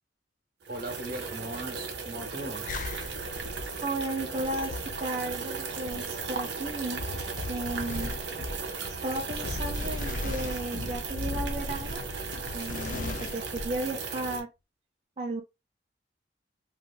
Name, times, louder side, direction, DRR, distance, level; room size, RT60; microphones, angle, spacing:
sound 1, 0.6-14.4, right 5 dB, 70° right, 0.7 m, -37 dB
voice 1, 0.7-2.7, right 1 dB, 55° right, 1.1 m, -38 dB
sound 2, 2.7-13.8, left 2 dB, 45° left, 0.4 m, -38 dB
voice 2, 3.8-7.0 7.5-8.1 9.0-12.0 12.5-14.5 15.2-15.4, right 2 dB, 35° right, 0.5 m, -34 dB
3.3 x 2.6 x 2.3 m
head